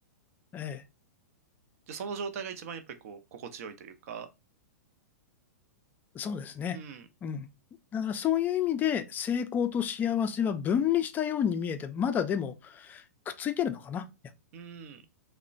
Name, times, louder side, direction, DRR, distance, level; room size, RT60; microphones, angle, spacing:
voice 1, 1.9-4.3 6.7-7.1 14.5-15.0, right 6 dB, 60° right, 0.5 m, -40 dB
voice 2, 6.2-6.8 7.2-7.5 7.9-14.1, left 9 dB, 20° left, 0.3 m, -30 dB
2.8 x 2.1 x 2.4 m
hypercardioid pair, 115°, 9 cm